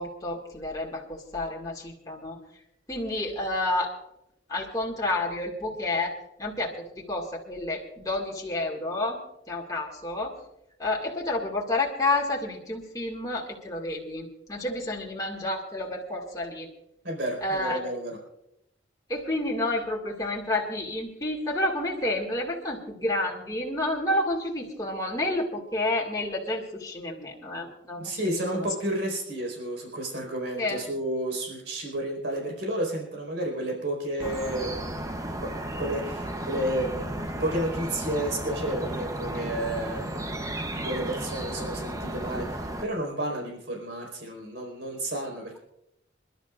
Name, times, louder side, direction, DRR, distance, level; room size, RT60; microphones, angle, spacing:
voice 1, 0.0-2.4 2.9-3.9 4.5-6.1 6.4-9.2 9.5-10.3 10.8-16.7 17.4-17.8 19.1-28.7 30.6-30.8, left 2 dB, 20° left, -2 dB, 2.0 m, -30 dB
voice 2, 17.0-18.2 28.0-34.7 35.4-40.3 40.7-45.6, right 1 dB, 70° right, 0 dB, 4.6 m, -31 dB
sound 1, 34.2-42.9, right 1 dB, 20° right, 0.9 m, -34 dB
28.0 x 12.0 x 2.5 m, 0.82 s
head